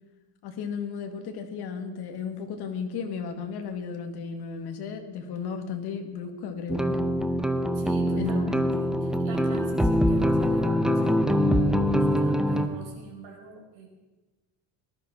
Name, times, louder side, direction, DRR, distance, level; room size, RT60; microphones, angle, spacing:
voice 1, 0.4-7.0 8.2-8.8, left 6 dB, 55° left, 5 dB, 2.2 m, -34 dB
sound 1, 6.7-12.7, equal, ahead, 0.6 m, -24 dB
voice 2, 7.7-13.9, right 4 dB, 65° right, 0 dB, 5.1 m, -45 dB
19.0 x 12.0 x 5.9 m, 1.1 s
cardioid pair, 165°, 47 cm